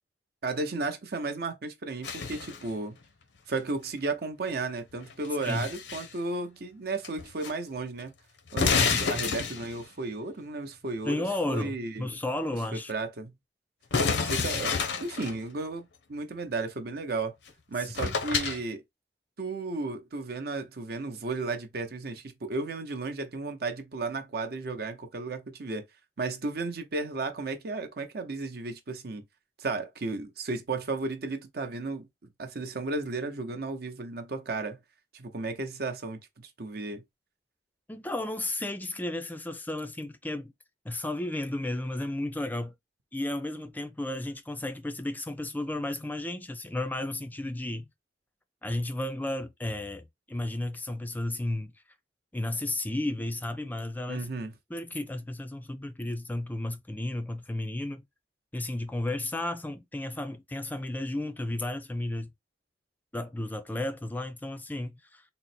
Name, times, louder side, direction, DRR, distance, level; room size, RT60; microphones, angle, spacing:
voice 1, 0.4-3.0 3.5-8.1 8.5-12.1 12.9-13.3 14.2-17.3 17.7-18.8 19.4-25.8 26.2-29.2 29.6-32.1 32.4-34.8 35.1-37.0 54.1-54.5, right 3 dB, 60° right, 0.7 m, -34 dB
sound 1, 2.0-2.7 5.1-6.1 7.0-7.5 7.8-7.9 8.5-9.9 13.9-15.4 17.5-17.6 17.9-18.6, left 5 dB, 85° left, 0.6 m, -29 dB
voice 2, 11.0-12.9 18.0-18.2 37.9-40.5 40.9-42.7 43.1-47.8 48.6-51.7 52.3-54.3 54.7-58.0 58.5-62.3 63.1-65.2, left 1 dB, 10° left, 0.3 m, -33 dB
3.7 x 2.0 x 4.2 m
head